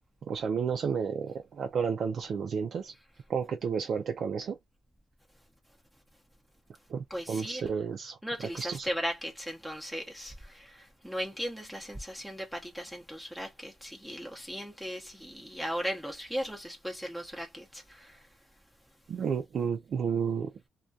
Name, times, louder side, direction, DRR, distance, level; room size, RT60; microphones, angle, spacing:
voice 1, 0.2-2.9 3.3-4.6 6.9-8.2 8.6-8.9 19.1-20.5, right 6 dB, 55° right, 0.4 m, -31 dB
voice 2, 7.1-7.8 8.2-18.3, equal, ahead, 0.6 m, -37 dB
2.2 x 2.2 x 2.6 m
cardioid pair, 90°, 0 cm